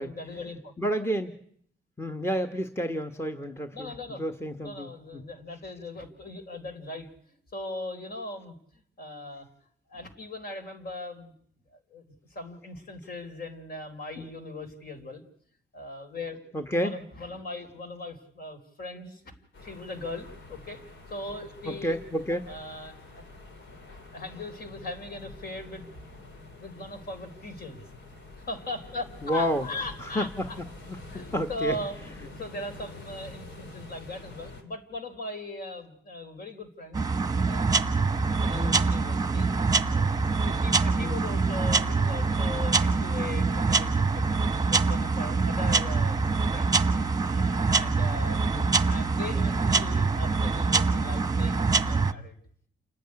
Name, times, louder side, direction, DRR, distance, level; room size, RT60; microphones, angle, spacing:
voice 1, 0.0-0.7 3.7-4.2 4.6-8.5 9.0-9.5 9.9-11.3 11.7-15.2 15.7-16.4 16.7-19.2 19.6-20.8 21.1-22.0 22.5-23.2 24.1-25.9 26.6-27.9 28.4-30.6 31.1-37.0 37.4-37.6 38.1-39.5 39.9-40.2 40.4-44.3 44.7-46.9 47.2-48.4 48.8-52.4, left 2 dB, 50° left, 6 dB, 4.3 m, -39 dB
voice 2, 0.8-1.3 2.0-5.2 14.2-14.3 16.5-16.9 21.6-22.5 29.2-29.6 30.0-30.5 30.9-31.8 38.5-38.8 41.0-41.2 48.5-48.7, equal, 15° left, 7 dB, 1.4 m, -30 dB
sound 1, 19.5-34.6, left 2 dB, 70° left, 3.6 m, -47 dB
sound 2, 36.9-52.1, right 4 dB, 20° right, 1.2 m, -25 dB
29.0 x 10.0 x 10.0 m, 0.64 s
cardioid pair, 90°, 20 cm